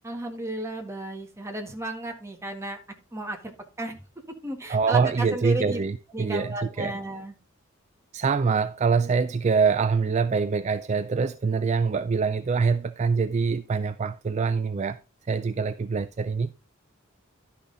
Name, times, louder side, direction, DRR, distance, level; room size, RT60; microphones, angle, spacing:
voice 1, 0.0-2.8 3.1-3.4 3.8-3.9 4.4-5.8 6.1-7.3, right 1 dB, 15° right, 1.6 m, -33 dB
voice 2, 4.7-7.0 8.1-15.0 15.3-16.5, right 5 dB, 35° right, 0.3 m, -24 dB
11.5 x 5.7 x 3.9 m
head